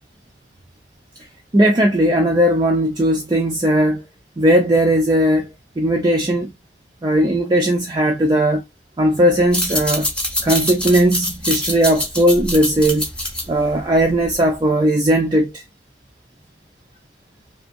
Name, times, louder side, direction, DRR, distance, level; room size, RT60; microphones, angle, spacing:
voice 1, 1.5-4.0 4.4-5.5 5.8-6.5 7.0-8.6 9.0-10.1 10.4-13.1 13.5-15.6, right 1 dB, 20° right, 0.3 m, -17 dB
sound 1, 9.4-14.6, left 1 dB, 5° left, 0.7 m, -25 dB
2.6 x 2.4 x 2.5 m
head